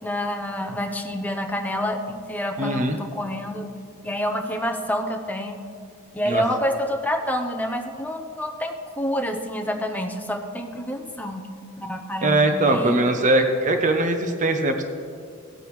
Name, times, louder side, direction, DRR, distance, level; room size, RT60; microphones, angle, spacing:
voice 1, 0.0-3.7 4.0-5.6 6.1-11.5 11.8-13.1, equal, 5° left, 3 dB, 0.8 m, -28 dB
voice 2, 2.6-3.0 6.3-6.4 12.2-14.8, right 2 dB, 35° right, 6 dB, 0.7 m, -21 dB
17.5 x 8.2 x 3.2 m, 2.3 s
head